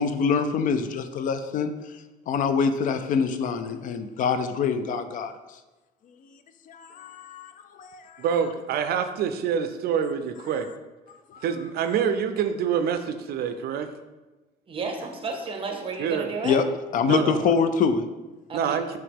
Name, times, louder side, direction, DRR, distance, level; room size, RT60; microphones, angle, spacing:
voice 1, 0.0-5.6 6.0-6.4 6.7-8.3 11.1-11.5 16.4-16.7 16.9-18.1, left 6 dB, 50° left, 9 dB, 0.4 m, -26 dB
voice 2, 8.2-10.7 11.4-13.9 16.0-16.3 17.1-17.5 18.5-18.8, right 7 dB, 65° right, 9 dB, 0.4 m, -26 dB
voice 3, 14.7-16.6 18.5-18.8, right 4 dB, 30° right, 4 dB, 0.8 m, -32 dB
4.7 x 3.0 x 3.5 m, 1.1 s
cardioid pair, 110°, 17 cm